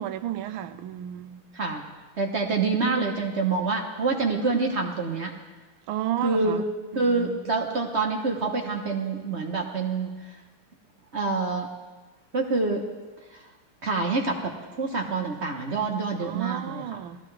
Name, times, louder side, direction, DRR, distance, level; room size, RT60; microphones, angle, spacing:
voice 1, 0.0-1.4 2.7-3.1 5.9-6.6 6.9-7.3 16.2-17.2, right 11 dB, 80° right, 1.4 m, -32 dB
voice 2, 2.2-5.3 6.2-6.6 6.9-10.1 11.1-11.7 12.3-12.8 13.8-16.8, right 3 dB, 40° right, 1.0 m, -26 dB
19.0 x 14.0 x 3.3 m
omnidirectional pair, 2.3 m